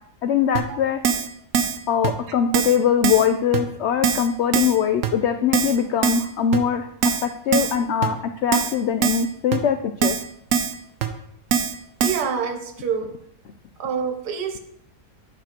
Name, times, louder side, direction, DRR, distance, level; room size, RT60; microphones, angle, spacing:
voice 1, 0.2-1.0 1.9-6.9 7.2-8.2 8.4-10.1, left 8 dB, 70° left, 8 dB, 0.6 m, -22 dB
Keyboard (musical), 0.6-0.7 1.0-1.3 1.5-1.8 2.0-2.1 2.5-2.8 3.0-3.3 3.5-3.6 4.0-4.3 4.5-4.8 5.0-5.1 5.5-5.8 6.0-6.3 6.5-6.6 7.0-7.3 7.5-7.8 8.0-8.1 8.5-8.8 9.0-9.3 9.5-9.6 10.0-10.2 10.5-10.7 11.0-11.1 11.5-11.7 12.0-12.2, right 7 dB, 65° right, 1.0 m, -22 dB
voice 2, 12.0-13.1 13.8-14.6, right 6 dB, 90° right, 7 dB, 1.5 m, -26 dB
9.0 x 5.9 x 4.4 m, 0.74 s
omnidirectional pair, 1.7 m